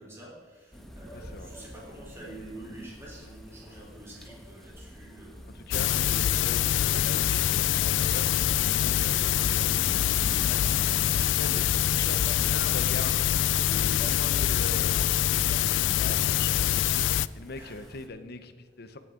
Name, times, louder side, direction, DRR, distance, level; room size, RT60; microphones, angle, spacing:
voice 1, 0.0-5.6 17.5-17.9, right 1 dB, 15° right, -5 dB, 3.6 m, -47 dB
sound 1, 0.7-18.1, equal, ahead, 1.2 m, -45 dB
voice 2, 1.1-1.5 5.5-8.3 8.6-11.0 11.4-16.8 17.3-19.0, left 3 dB, 60° left, 9 dB, 0.8 m, -41 dB
sound 2, 5.7-17.3, left 11 dB, 85° left, 0.3 m, -25 dB
17.0 x 8.4 x 3.8 m, 1.5 s
head